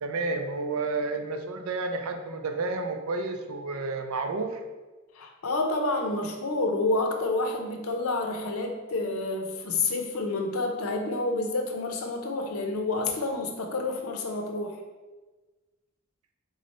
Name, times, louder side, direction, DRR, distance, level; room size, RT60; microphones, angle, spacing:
voice 1, 0.0-4.6, right 3 dB, 90° right, 6 dB, 0.5 m, -31 dB
voice 2, 5.1-14.8, left 2 dB, 90° left, 4 dB, 0.7 m, -29 dB
3.9 x 3.1 x 4.1 m, 1.2 s
head